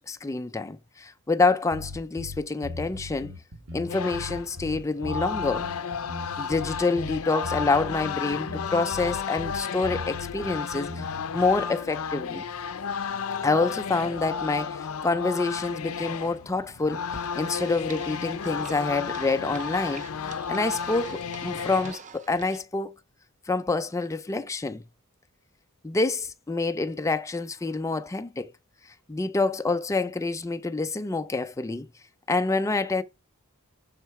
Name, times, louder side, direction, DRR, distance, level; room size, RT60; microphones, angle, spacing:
voice 1, 0.1-3.3 3.7-5.7 6.4-11.1 11.3-12.4 13.4-17.0 17.4-20.1 20.5-22.9 23.5-24.8 25.8-28.5 29.1-31.9 32.3-33.0, left 3 dB, 15° left, 0.4 m, -27 dB
sound 1, 1.7-11.3, left 2 dB, 60° right, 1.7 m, -39 dB
sound 2, 3.9-21.9, left 6 dB, 70° left, 0.6 m, -33 dB
sound 3, 17.1-22.6, right 5 dB, 35° right, 0.7 m, -46 dB
6.6 x 6.0 x 4.7 m
head